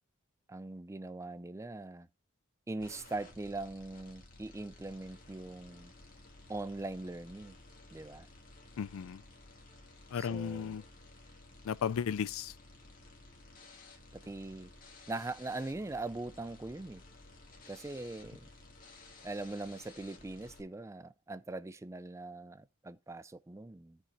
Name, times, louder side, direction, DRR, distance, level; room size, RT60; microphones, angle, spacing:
voice 1, 0.5-2.1 2.7-5.9 6.5-7.6 7.9-8.3 10.1-10.8 14.1-14.7 15.1-17.0 17.7-18.5 19.2-24.0, right 2 dB, 15° right, 0.3 m, -41 dB
sound 1, 2.8-20.6, left 2 dB, 40° left, 2.3 m, -55 dB
voice 2, 8.8-9.2 10.1-10.8 11.6-12.5, left 7 dB, 70° left, 0.4 m, -35 dB
15.5 x 5.9 x 2.6 m
head